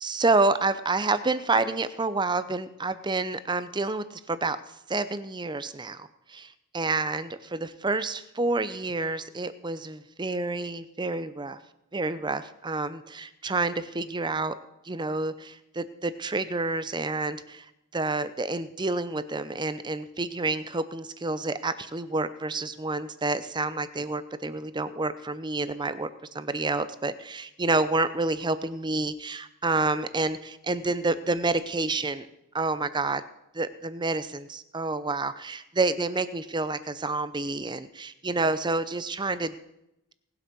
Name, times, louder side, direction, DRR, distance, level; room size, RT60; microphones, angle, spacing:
voice 1, 0.0-4.6 4.9-11.6 11.9-14.5 14.8-17.7 17.9-32.3 32.5-33.2 33.5-39.5, right 3 dB, 20° right, 13 dB, 0.6 m, -29 dB
19.0 x 8.0 x 6.1 m, 0.84 s
head